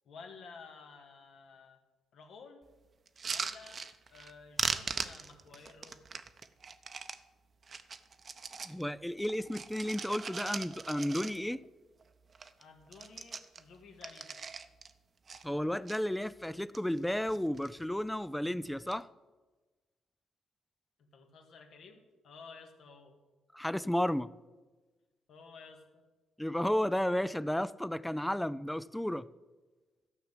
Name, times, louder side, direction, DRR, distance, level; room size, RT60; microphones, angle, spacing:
voice 1, 0.1-1.8 2.1-2.6 3.3-3.8 4.1-6.0 12.6-14.4 21.0-23.2 25.3-26.0, left 5 dB, 65° left, 1.9 m, -53 dB
sound 1, 3.1-4.3 4.6-7.2 7.6-8.8 9.2-11.7 12.0-12.1 12.3-12.6 12.9-14.9 15.3-16.0 16.5-17.0 17.3-17.8 18.7-19.0, right 5 dB, 40° right, 0.7 m, -40 dB
voice 2, 8.7-11.6 15.4-19.1 23.5-24.3 26.4-29.3, left 1 dB, 5° left, 0.4 m, -33 dB
13.0 x 5.8 x 8.2 m
cardioid pair, 90°, 0 cm